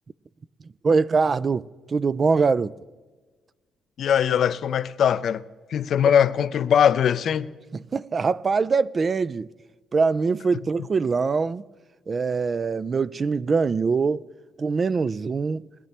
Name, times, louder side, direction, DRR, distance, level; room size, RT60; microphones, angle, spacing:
voice 1, 0.8-2.7 7.7-9.5 9.9-11.6 12.1-14.2 14.6-15.6, right 4 dB, 40° right, 0.3 m, -23 dB
voice 2, 4.0-5.4 5.7-7.5, left 8 dB, 65° left, 0.4 m, -21 dB
20.5 x 10.5 x 3.3 m
cardioid pair, 90°, 0 cm